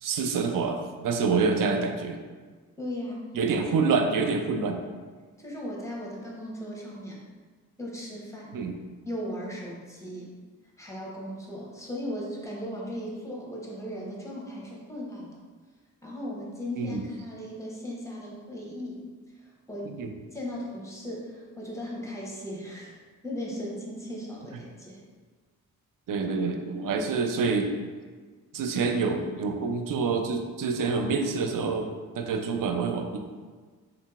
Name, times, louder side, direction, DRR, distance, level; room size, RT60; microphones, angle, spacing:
voice 1, 0.0-2.2 3.3-4.8 8.5-8.7 16.8-17.0 20.0-20.1 26.1-27.7 28.5-33.2, right 4 dB, 55° right, 5 dB, 0.5 m, -27 dB
voice 2, 2.8-3.3 5.4-7.2 7.8-8.6 9.0-10.3 10.8-15.4 16.0-19.0 19.4-20.0 20.3-25.0, equal, 10° left, -4 dB, 1.0 m, -37 dB
3.7 x 2.7 x 2.4 m, 1.5 s
supercardioid pair, 45°, 39 cm